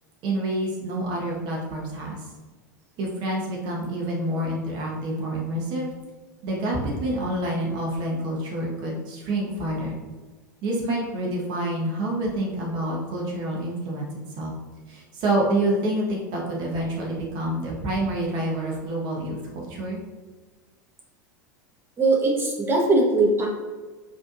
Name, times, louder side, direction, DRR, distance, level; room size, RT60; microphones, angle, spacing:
voice 1, 0.2-2.2 3.0-5.9 6.4-9.9 10.6-14.1 14.4-14.5 14.9-20.0, right 1 dB, 45° right, -3 dB, 1.3 m, -27 dB
voice 2, 22.0-23.5, right 2 dB, 20° right, -1 dB, 1.1 m, -20 dB
4.9 x 3.1 x 2.5 m, 1.3 s
figure-of-eight pair, 85°, 10 cm